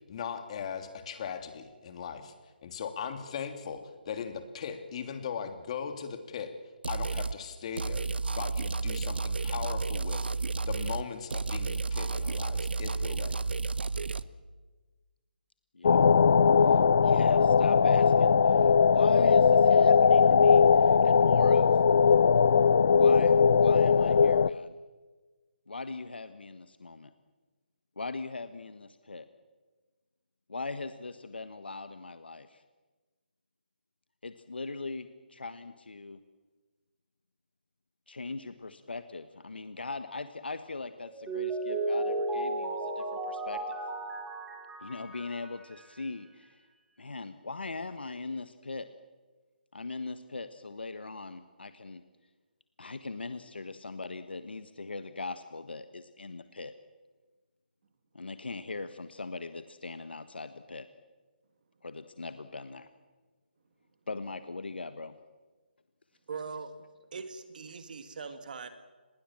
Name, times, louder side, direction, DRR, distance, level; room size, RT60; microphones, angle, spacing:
voice 1, 0.1-2.3 2.6-6.5 6.9-8.1 8.4-10.3 10.6-13.5, left 7 dB, 40° left, 8 dB, 3.0 m, -38 dB
sound 1, 6.8-7.4 7.8-11.1 11.3-14.2, right 4 dB, 80° right, 1.1 m, -32 dB
voice 2, 15.7-16.1 16.6-21.7 22.9-24.8 25.7-27.1 28.0-29.3 30.5-32.6 34.2-36.2 38.1-43.8 44.8-46.6 47.0-48.9 49.7-52.0 52.8-56.7 58.1-60.9 61.8-62.9 64.1-65.1, left 3 dB, 80° left, 11 dB, 1.4 m, -40 dB
sound 2, 15.8-24.5, left 6 dB, 60° left, 0.7 m, -20 dB
Mallet percussion, 41.0-46.0, right 2 dB, 10° right, 3.5 m, -34 dB
voice 3, 66.3-66.8 67.1-68.7, right 5 dB, 55° right, 9 dB, 2.1 m, -41 dB
27.0 x 21.0 x 7.5 m, 1.3 s
figure-of-eight pair, 150°, 5 cm